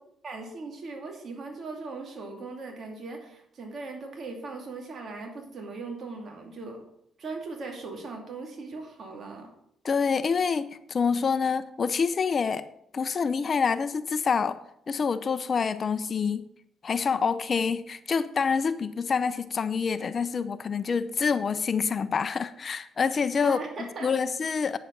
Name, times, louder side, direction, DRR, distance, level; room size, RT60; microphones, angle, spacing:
voice 1, 0.2-6.8 7.2-9.5 23.4-24.1, right 3 dB, 50° right, 2 dB, 2.5 m, -39 dB
voice 2, 9.8-12.7 12.9-14.6 14.9-16.5 16.8-24.8, left 5 dB, 45° left, 13 dB, 0.6 m, -27 dB
9.2 x 7.3 x 5.3 m, 0.74 s
cardioid pair, 90°, 0 cm